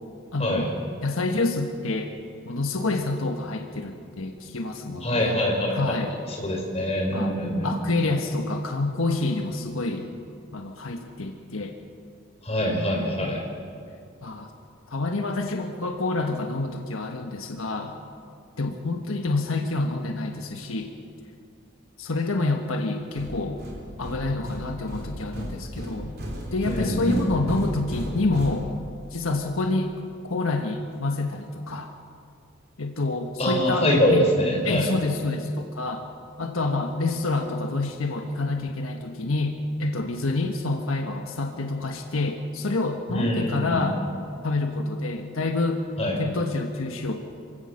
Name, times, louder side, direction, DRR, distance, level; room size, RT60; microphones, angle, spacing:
voice 1, 0.3-0.7 1.0-2.1 2.4-5.3 5.7-6.1 7.1-7.3 7.6-10.1 10.5-11.7 12.8-13.3 14.2-14.5 14.9-17.9 18.6-20.9 22.0-23.6 24.0-26.1 26.5-28.7 29.1-29.9 30.2-31.9 32.8-34.3 34.6-36.1 36.4-44.0 44.4-45.9 46.2-47.2, left 2 dB, 85° left, 4 dB, 1.4 m, -27 dB
voice 2, 5.0-7.7 12.4-13.4 26.7-27.2 33.4-34.9 43.1-43.9 46.0-46.2, equal, 30° left, -1 dB, 4.5 m, -24 dB
sound 1, 23.2-29.2, equal, 50° right, 4.2 m, -35 dB
26.5 x 16.5 x 6.5 m, 2.4 s
head